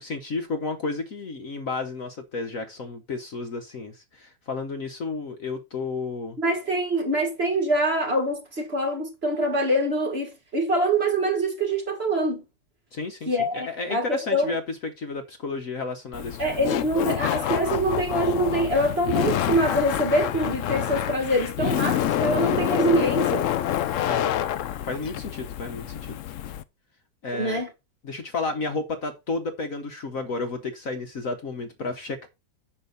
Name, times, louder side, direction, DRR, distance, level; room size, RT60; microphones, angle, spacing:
voice 1, 0.0-6.4 12.9-16.4 16.7-16.8 24.0-24.4 24.8-26.2 27.2-27.6 28.0-32.3, left 3 dB, 50° left, 1.4 m, -32 dB
voice 2, 6.4-12.4 13.3-14.5 16.4-23.5 27.3-27.7, right 1 dB, 35° right, 2.1 m, -24 dB
Laughter, 16.1-26.6, left 11 dB, 85° left, 0.7 m, -27 dB
10.5 x 3.5 x 6.9 m
omnidirectional pair, 2.1 m